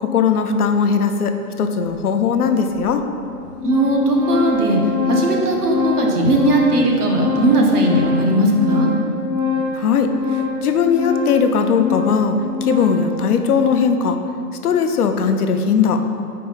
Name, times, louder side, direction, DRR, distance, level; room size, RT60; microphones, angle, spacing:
voice 1, 0.0-3.0 9.7-12.3 12.6-14.2 14.6-16.0, left 6 dB, 70° left, 6 dB, 0.7 m, -18 dB
Organ, 1.9-2.0 2.8-2.9 3.2-13.1, left 4 dB, 5° right, 0.5 m, -24 dB
voice 2, 3.6-4.8 5.1-8.9, right 1 dB, 75° right, 0 dB, 1.2 m, -18 dB
4.6 x 4.3 x 5.5 m, 2.5 s
hypercardioid pair, 170°, 47 cm